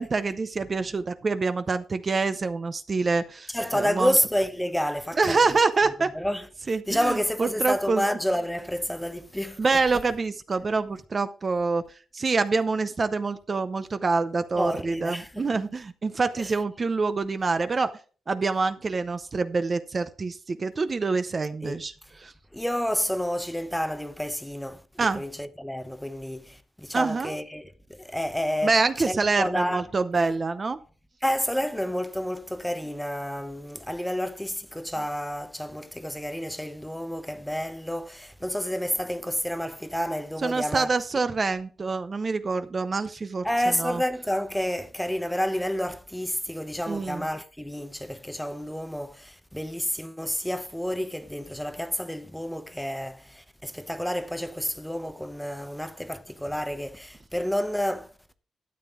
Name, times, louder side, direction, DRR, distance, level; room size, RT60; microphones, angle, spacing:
voice 1, 0.0-4.1 5.2-6.1 6.7-8.0 9.6-11.8 12.1-17.9 18.3-22.3 25.0-25.2 26.9-27.4 28.6-30.8 40.4-43.5 43.8-44.0 46.9-47.3, right 4 dB, 30° right, 0.7 m, -26 dB
voice 2, 3.5-5.4 6.1-9.6 14.6-15.5 16.4-16.5 21.6-21.8 22.5-28.7 29.1-29.9 30.1-30.3 31.2-40.9 43.4-58.1, equal, 5° left, 0.8 m, -30 dB
12.5 x 8.9 x 3.7 m
wide cardioid pair, 165°, 0 cm